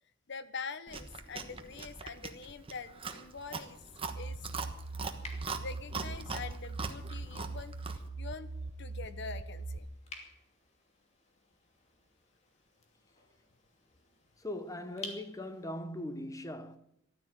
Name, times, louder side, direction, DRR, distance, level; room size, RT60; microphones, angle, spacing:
voice 1, 0.3-3.8 4.2-4.5 5.6-8.5 8.8-9.9, left 5 dB, 60° left, 1.1 m, -44 dB
Chewing mastication, 0.9-8.1, right 4 dB, 30° right, 1.3 m, -42 dB
sound 1, 2.3-15.8, left 3 dB, 35° left, 2.6 m, -54 dB
sound 2, 4.0-9.8, right 3 dB, 85° right, 0.8 m, -41 dB
voice 2, 14.4-16.8, left 1 dB, 15° left, 1.0 m, -40 dB
14.0 x 12.5 x 7.5 m
head